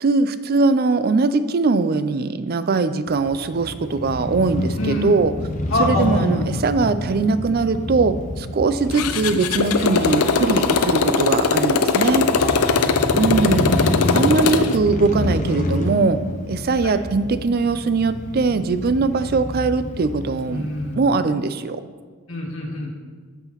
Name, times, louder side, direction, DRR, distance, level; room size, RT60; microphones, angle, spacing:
voice 1, 0.0-5.3 5.8-12.3 13.1-13.8 14.1-16.2 16.5-20.7 21.0-21.8, right 4 dB, 45° right, 12 dB, 0.4 m, -21 dB
Crow / Motorcycle, 3.1-20.9, left 1 dB, 35° left, 0.6 m, -28 dB
voice 2, 4.8-5.2 5.7-6.3 9.8-10.7 12.3-13.0 13.4-13.9 16.8-16.9 20.5-21.2 22.3-22.9, left 2 dB, 65° left, -3 dB, 1.5 m, -28 dB
Motorcycle, 8.9-14.8, left 5 dB, 90° left, 0.5 m, -20 dB
14.5 x 5.6 x 3.0 m, 1.5 s
head